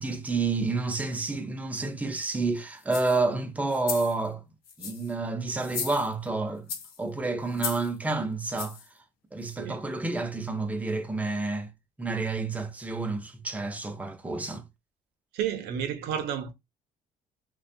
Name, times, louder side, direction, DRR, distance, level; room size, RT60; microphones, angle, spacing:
voice 1, 0.0-4.4 4.8-6.7 7.0-8.8 9.3-11.7 12.0-14.6, right 3 dB, 10° right, 0.4 m, -29 dB
sound 1, 2.8-3.2 3.7-4.2 4.7-5.1 5.6-6.3 6.7-7.0 7.5-7.9 8.6-8.9 9.5-9.6, left 6 dB, 65° left, 0.6 m, -36 dB
voice 2, 15.3-16.5, right 9 dB, 75° right, 0.6 m, -31 dB
2.4 x 2.1 x 2.5 m
cardioid pair, 135°, 17 cm